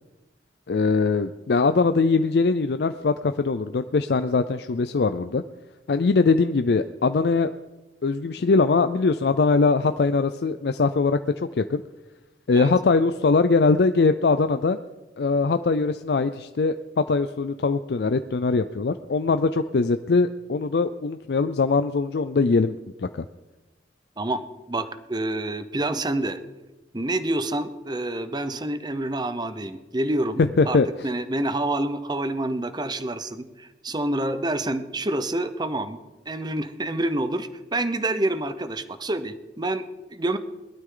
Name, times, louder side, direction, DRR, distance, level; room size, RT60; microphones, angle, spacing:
voice 1, 0.7-5.4 5.9-7.5 8.0-11.8 12.5-14.8 15.2-23.2 30.4-30.9, left 4 dB, 65° left, 10 dB, 0.4 m, -22 dB
voice 2, 24.2-26.4 26.9-36.0 36.3-39.8 40.1-40.4, right 1 dB, 25° right, 11 dB, 0.8 m, -27 dB
19.5 x 12.5 x 3.9 m, 1.1 s
head